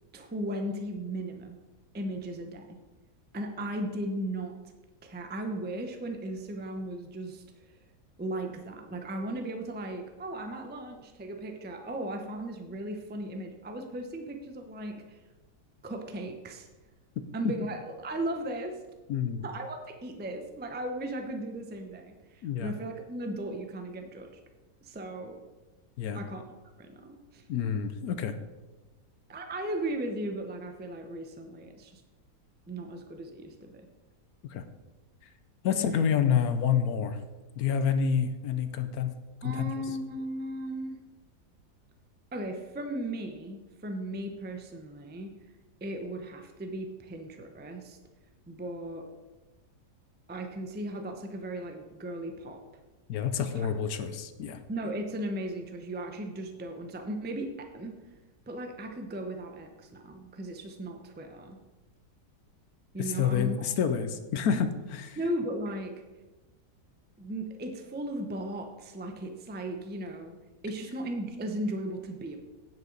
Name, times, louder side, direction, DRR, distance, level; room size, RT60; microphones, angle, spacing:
voice 1, 0.1-1.6 1.9-2.8 3.3-4.5 5.0-7.4 8.2-15.2 15.8-16.7 17.3-18.8 19.4-24.3 24.8-25.4 26.1-27.4 29.3-32.0 32.7-33.9 35.7-36.1 39.4-41.0 42.3-45.3 45.8-48.0 48.5-49.1 50.3-52.6 53.6-53.7 54.7-57.9 58.5-61.6 62.9-63.7 64.5-64.7 65.2-66.0 67.2-70.4 70.6-72.4, right 1 dB, 15° right, 5 dB, 0.4 m, -36 dB
voice 2, 19.1-19.4 22.4-22.7 26.0-26.2 27.5-28.3 34.5-34.6 35.6-37.2 37.6-39.1 39.4-39.7 53.1-54.6 63.0-65.1, left 7 dB, 70° left, 10 dB, 1.1 m, -28 dB
9.3 x 8.1 x 3.9 m, 1.2 s
omnidirectional pair, 1.7 m